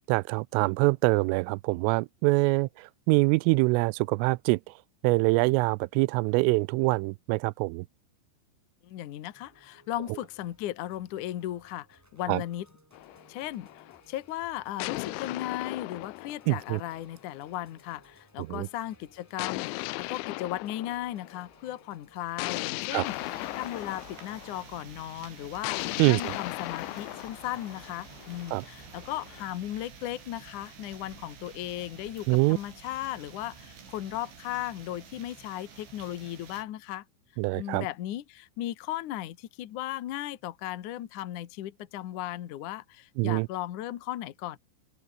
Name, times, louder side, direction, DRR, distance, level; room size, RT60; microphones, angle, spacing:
voice 1, 0.1-4.6 5.0-7.9 12.3-12.4 16.5-16.8 18.4-18.7 22.9-23.0 26.0-26.4 28.5-28.7 32.3-32.6 37.4-37.9 43.2-43.5, right 25 dB, 85° right, 3.1 m, -25 dB
voice 2, 8.8-12.7 13.3-37.0 37.5-44.6, left 13 dB, 75° left, 1.8 m, -36 dB
sound 1, 9.3-23.0, equal, 5° right, 4.5 m, -61 dB
sound 2, 12.9-14.0 14.8-17.4 19.4-21.5 22.4-24.7 25.6-29.4, left 24 dB, 90° left, 2.6 m, -37 dB
sound 3, 23.0-36.6, right 6 dB, 65° right, 7.5 m, -50 dB
open air
omnidirectional pair, 5.8 m